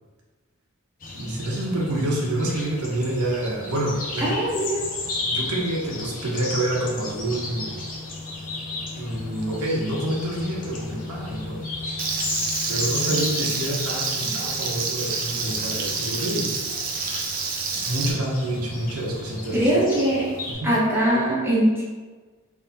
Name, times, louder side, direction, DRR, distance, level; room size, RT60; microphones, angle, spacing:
sound 1, 1.0-20.5, left 2 dB, 40° left, 0.6 m, -34 dB
voice 1, 1.1-4.3 5.3-7.8 9.0-12.1 12.7-16.5 17.8-19.7 20.5-20.7, right 1 dB, 80° right, -3 dB, 0.8 m, -27 dB
voice 2, 4.2-4.8 19.5-20.3 20.6-21.8, right 1 dB, 10° right, -8 dB, 0.8 m, -21 dB
Frying (food), 12.0-18.1, right 4 dB, 40° right, 0.5 m, -28 dB
3.5 x 3.1 x 2.8 m, 1.4 s
head